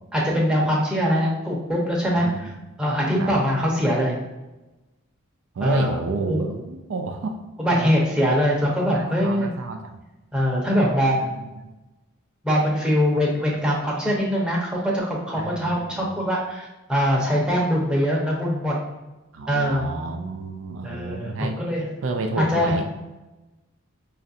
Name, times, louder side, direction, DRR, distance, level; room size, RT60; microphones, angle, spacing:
voice 1, 0.1-2.3 2.8-4.2 5.6-6.0 6.3-6.4 7.6-9.5 10.3-11.4 12.4-18.7 19.5-19.9 20.8-21.8 22.4-22.7, equal, 5° right, -4 dB, 0.7 m, -22 dB
voice 2, 2.1-2.5 3.2-3.3 5.5-7.4 7.7-7.9 8.9-9.9 11.1-11.7 15.4-16.1 19.3-21.6 22.0-22.9, right 3 dB, 70° right, 4 dB, 0.4 m, -31 dB
5.1 x 2.4 x 2.6 m, 1.1 s
head